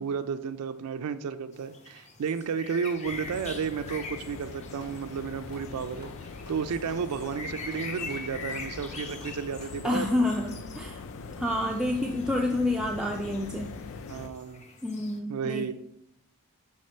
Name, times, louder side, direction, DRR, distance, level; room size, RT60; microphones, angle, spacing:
voice 1, 0.0-10.1 14.1-14.6 15.3-15.7, right 6 dB, 85° right, 9 dB, 0.4 m, -32 dB
sound 1, 1.5-15.2, left 4 dB, 30° left, 0.7 m, -44 dB
Clapping, 2.5-3.2 3.8-5.0 5.5-5.7 6.0-9.8, left 2 dB, 90° left, 2.3 m, -53 dB
sound 2, 3.1-14.3, left 4 dB, 60° left, 0.4 m, -42 dB
voice 2, 9.8-11.0 11.4-13.7 14.8-15.7, left 1 dB, 5° right, 0 dB, 0.3 m, -28 dB
6.5 x 3.5 x 4.3 m, 0.77 s
head